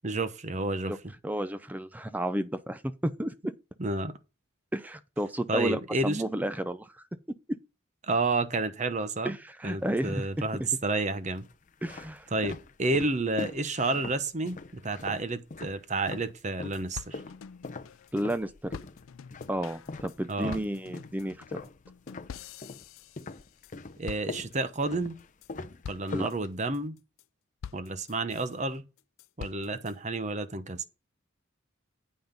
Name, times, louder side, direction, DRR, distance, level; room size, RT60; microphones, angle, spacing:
voice 1, 0.0-1.0 3.8-4.2 5.5-6.3 8.1-9.3 9.6-11.5 12.3-17.2 20.3-20.6 24.0-25.2 25.9-27.0 27.7-28.8 29.4-30.8, right 2 dB, 35° right, 0.9 m, -30 dB
voice 2, 1.2-3.5 4.7-6.9 7.5-7.6 9.2-10.3 11.8-12.3 18.1-18.7 19.5-21.6 26.1-26.3, right 1 dB, 10° right, 0.4 m, -32 dB
sound 1, 9.8-10.5 11.2-16.3 16.6-22.9 23.2-26.9, left 3 dB, 40° left, 0.6 m, -41 dB
sound 2, 16.1-16.2 16.4-16.5 16.7-18.4 18.7-23.8 24.1-24.8 25.2-25.5 25.8-26.3 26.7-27.2 27.6-28.6 29.0-29.9, left 7 dB, 85° left, 0.4 m, -46 dB
8.7 x 5.8 x 5.3 m
head